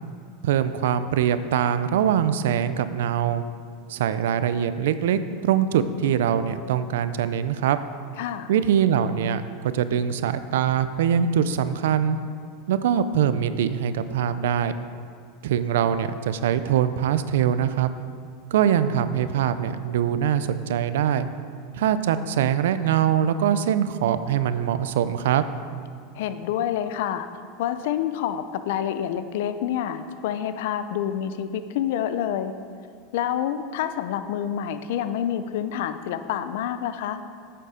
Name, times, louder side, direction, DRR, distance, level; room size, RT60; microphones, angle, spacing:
voice 1, 0.4-3.4 3.9-7.8 8.5-12.2 12.7-14.7 15.4-17.9 18.5-21.3 21.7-25.5, right 9 dB, 80° right, 12 dB, 0.5 m, -23 dB
voice 2, 8.2-8.5 26.2-27.3 27.6-32.5 33.1-37.2, left 10 dB, 75° left, 11 dB, 0.5 m, -28 dB
8.9 x 6.8 x 4.9 m, 2.1 s
supercardioid pair, 120°, 0 cm